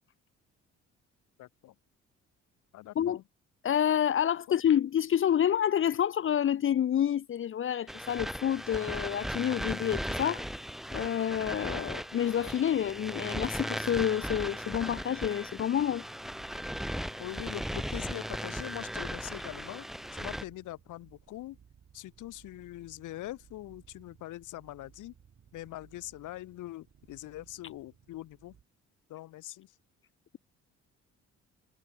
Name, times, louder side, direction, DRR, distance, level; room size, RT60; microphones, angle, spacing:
voice 1, 1.4-1.7 2.7-3.2 4.5-4.6 11.9-12.0 17.2-21.6 21.9-25.1 25.5-28.6 29.1-29.7, left 15 dB, 90° left, 2.9 m, -43 dB
voice 2, 3.6-10.4 10.9-16.0, left 9 dB, 45° left, 0.5 m, -28 dB
sound 1, 7.9-20.4, equal, ahead, 0.9 m, -37 dB
sound 2, 16.2-28.6, right 8 dB, 55° right, 7.1 m, -60 dB
cardioid pair, 90°, 30 cm